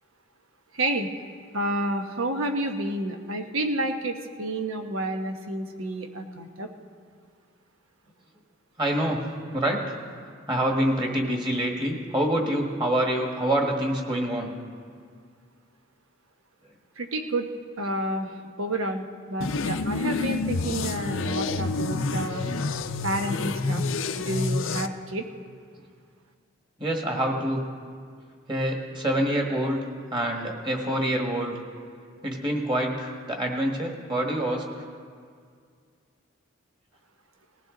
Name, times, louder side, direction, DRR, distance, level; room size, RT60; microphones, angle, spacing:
voice 1, 0.7-1.1 1.5-6.7 17.0-17.5 17.8-18.3 18.6-22.5 23.0-23.8 24.2-25.2, right 1 dB, 85° right, 5 dB, 1.1 m, -30 dB
voice 2, 8.8-9.2 9.5-9.8 10.5-14.5 26.8-27.6 28.5-29.8 30.1-31.6 32.2-34.9, right 1 dB, 25° right, 1 dB, 1.6 m, -26 dB
sound 1, 19.4-24.9, left 3 dB, 70° left, 0.6 m, -28 dB
19.5 x 15.0 x 3.9 m, 2.1 s
head